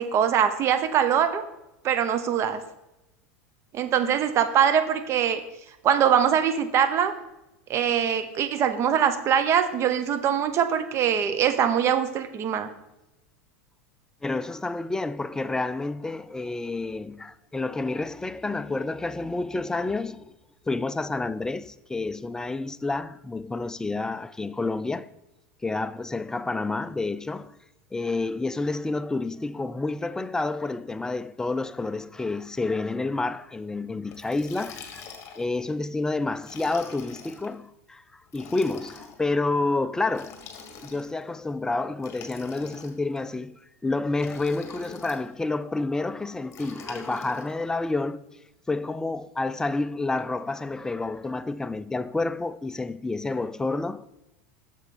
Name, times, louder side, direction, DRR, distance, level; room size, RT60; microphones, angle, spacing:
voice 1, 0.0-1.4 1.8-2.6 3.7-5.4 5.8-7.1 7.7-12.7, right 8 dB, 40° right, 0.9 m, -23 dB
voice 2, 14.2-20.3 20.7-25.1 25.6-27.6 27.9-35.0 35.4-40.3 40.8-48.2 48.7-54.1, left 3 dB, 10° left, 0.3 m, -29 dB
Liquid, 34.1-35.6 36.4-37.5 38.3-39.2 40.1-41.2 42.0-43.2 44.2-45.2 46.5-47.5, left 5 dB, 40° left, 1.7 m, -44 dB
8.1 x 6.9 x 4.3 m
hypercardioid pair, 105°, 7 cm